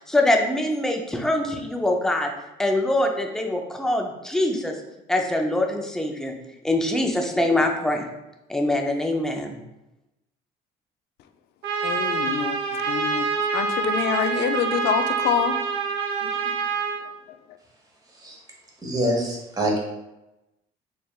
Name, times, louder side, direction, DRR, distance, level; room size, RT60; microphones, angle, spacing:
voice 1, 0.1-2.3 2.6-4.7 5.1-6.3 6.6-8.1 8.5-9.6, left 1 dB, 5° left, 2 dB, 0.5 m, -23 dB
Trumpet, 11.6-17.0, right 5 dB, 75° right, 0.9 m, -26 dB
voice 2, 11.8-15.6 16.2-16.6 17.3-17.4, left 8 dB, 75° left, 9 dB, 0.4 m, -27 dB
voice 3, 18.8-19.8, right 1 dB, 20° right, -1 dB, 1.1 m, -25 dB
4.5 x 3.3 x 2.3 m, 0.96 s
cardioid pair, 110°, 17 cm